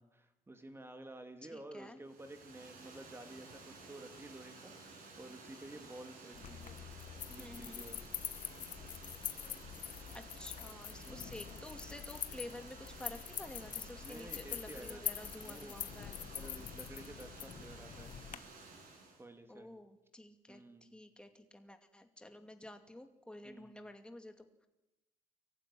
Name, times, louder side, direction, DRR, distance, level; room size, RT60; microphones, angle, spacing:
voice 1, 0.0-6.8 7.3-8.0 11.0-11.4 14.0-15.0 15.4-15.8 16.3-18.4 19.2-19.7 20.5-20.9 23.4-23.8, right 1 dB, 15° right, 6 dB, 2.8 m, -52 dB
voice 2, 1.5-2.0 7.4-7.8 10.1-16.2 19.5-24.7, left 1 dB, 5° left, 6 dB, 2.3 m, -51 dB
Water, 2.0-19.2, right 3 dB, 55° right, 6.9 m, -54 dB
sound 1, 6.3-18.4, left 9 dB, 50° left, 1.3 m, -45 dB
24.0 x 15.0 x 10.0 m, 0.99 s
cardioid pair, 110°, 17 cm